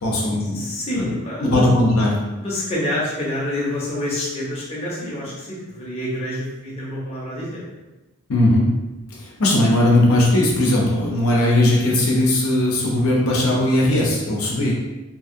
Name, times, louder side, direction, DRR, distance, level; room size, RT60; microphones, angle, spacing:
voice 1, 0.0-0.6 0.9-2.1 8.3-8.7 9.1-14.7, left 1 dB, 85° left, -3 dB, 0.7 m, -18 dB
voice 2, 0.5-1.7 2.4-7.7, left 1 dB, 30° left, -6 dB, 0.6 m, -27 dB
2.7 x 2.7 x 2.6 m, 1.1 s
head